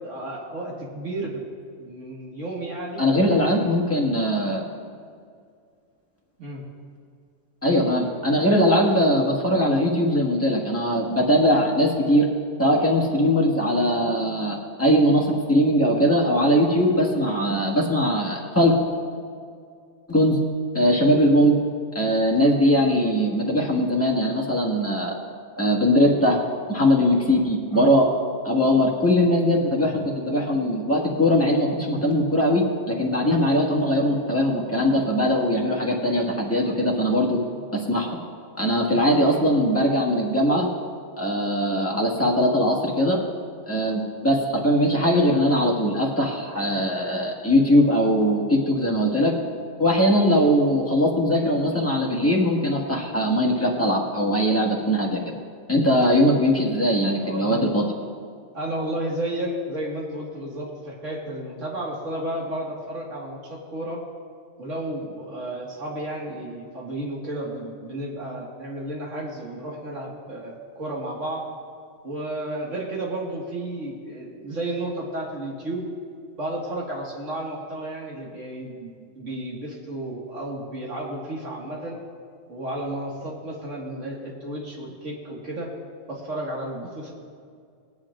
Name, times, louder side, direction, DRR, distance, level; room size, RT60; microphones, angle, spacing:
voice 1, 0.0-1.4 1.8-3.0 3.5-3.7 6.4-6.6 27.7-27.9 29.8-29.9 37.6-37.7 56.1-56.3 57.2-57.6 58.5-64.0 64.6-71.4 72.0-75.8 76.4-82.0 82.5-85.7 86.1-87.1, right 1 dB, 90° right, -3 dB, 2.2 m, -32 dB
voice 2, 3.0-4.6 7.6-12.3 12.6-18.8 20.1-20.4 20.7-21.6 21.9-25.1 25.6-26.4 26.7-28.1 28.4-37.4 37.7-38.1 38.5-40.7 41.2-43.2 43.7-49.4 49.8-55.2 55.7-57.8, equal, 10° left, -3 dB, 1.6 m, -20 dB
19.5 x 10.5 x 2.5 m, 2.2 s
omnidirectional pair, 1.3 m